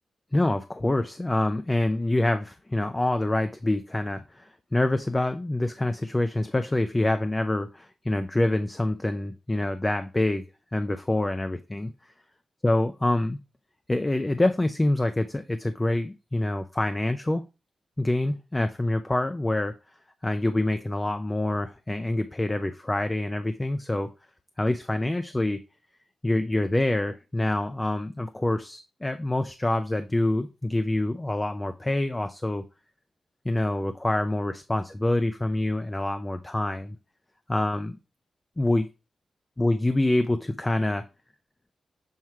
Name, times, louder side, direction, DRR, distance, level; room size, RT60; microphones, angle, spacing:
voice 1, 0.3-10.4 10.7-11.9 12.6-13.4 13.9-17.4 18.0-19.7 20.2-24.1 24.6-25.6 26.2-32.6 33.4-37.0 37.5-38.0 38.6-38.9 39.6-41.0, left 1 dB, 15° left, 9 dB, 0.5 m, -26 dB
7.3 x 3.1 x 4.6 m, 0.29 s
wide cardioid pair, 100°, 0 cm